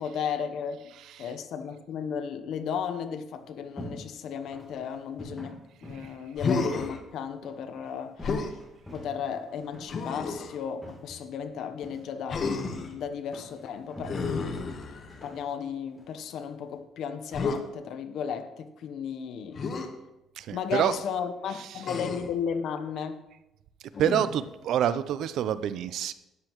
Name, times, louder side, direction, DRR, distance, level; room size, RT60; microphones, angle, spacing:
voice 1, 0.0-0.8 1.2-8.4 8.9-14.2 15.2-19.7 20.5-23.2, left 7 dB, 70° left, 0.9 m, -34 dB
voice 2, 0.9-1.3 20.4-21.0 21.5-22.0 24.0-26.1, right 10 dB, 70° right, 0.6 m, -28 dB
sound 1, 3.3-16.8, equal, 5° left, 3.1 m, -48 dB
Human voice, 6.4-7.0 8.2-8.6 9.9-10.6 12.3-12.9 14.0-15.3 17.3-17.6 19.6-19.9 21.8-22.4 23.9-24.5, left 4 dB, 45° left, 1.2 m, -31 dB
12.5 x 10.5 x 3.1 m
cardioid pair, 130°, 0 cm